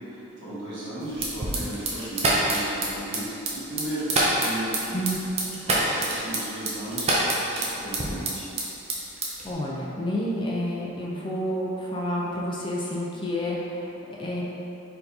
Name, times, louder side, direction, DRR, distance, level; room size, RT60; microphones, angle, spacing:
voice 1, 0.0-3.2 3.5-4.1 4.4-5.0 5.6-8.5, right 1 dB, 60° right, -11 dB, 1.5 m, -35 dB
sound 1, 1.1-8.6 8.9-9.5, right 2 dB, 30° right, 0.6 m, -25 dB
voice 2, 4.9-5.3 9.4-13.9 14.2-14.4, equal, 25° left, -4 dB, 0.5 m, -29 dB
4.6 x 3.9 x 2.7 m, 2.9 s
head